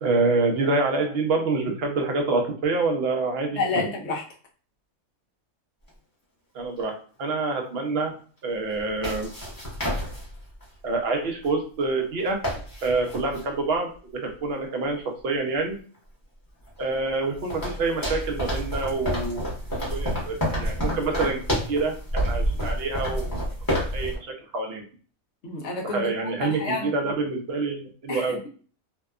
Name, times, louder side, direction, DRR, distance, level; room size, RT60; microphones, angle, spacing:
voice 1, 0.0-3.9 6.5-6.9 7.2-8.1 8.4-9.3 10.8-12.4 12.8-15.8 16.8-19.5 19.9-23.5 23.9-24.3 24.5-24.8 25.8-28.4, right 3 dB, 60° right, 2 dB, 0.7 m, -26 dB
voice 2, 3.5-4.2 25.4-26.0 26.4-26.9 28.1-28.5, left 3 dB, 65° left, 1 dB, 0.7 m, -29 dB
sound 1, 5.9-6.0 8.7-10.6 11.4-11.5 11.8-11.9 12.2-13.5 15.9-16.0 16.7-24.2, equal, 15° left, 0.9 m, -29 dB
2.7 x 2.2 x 2.3 m, 0.41 s
omnidirectional pair, 1.5 m